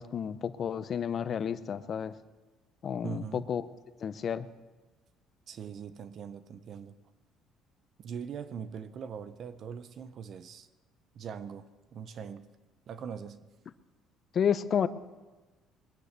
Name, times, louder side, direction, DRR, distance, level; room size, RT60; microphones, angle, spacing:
voice 1, 0.0-2.1 2.8-3.6 4.0-4.5 14.3-14.9, left 8 dB, 50° left, 14 dB, 0.8 m, -31 dB
voice 2, 3.0-3.5 5.5-6.9 8.0-10.7 11.1-12.5 12.9-13.4, right 7 dB, 55° right, 13 dB, 0.8 m, -41 dB
21.5 x 9.8 x 6.7 m, 1.2 s
supercardioid pair, 85°, 0 cm